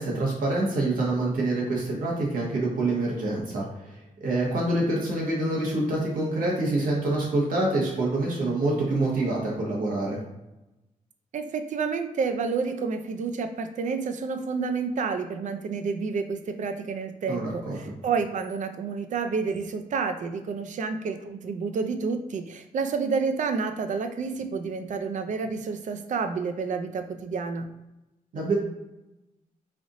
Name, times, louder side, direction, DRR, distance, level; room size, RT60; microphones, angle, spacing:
voice 1, 0.0-10.2 17.3-17.9 28.3-28.5, right 2 dB, 80° right, -3 dB, 1.2 m, -26 dB
voice 2, 11.3-27.7, right 5 dB, 60° right, 8 dB, 0.4 m, -29 dB
3.3 x 2.6 x 3.9 m, 0.97 s
wide cardioid pair, 115°, 14 cm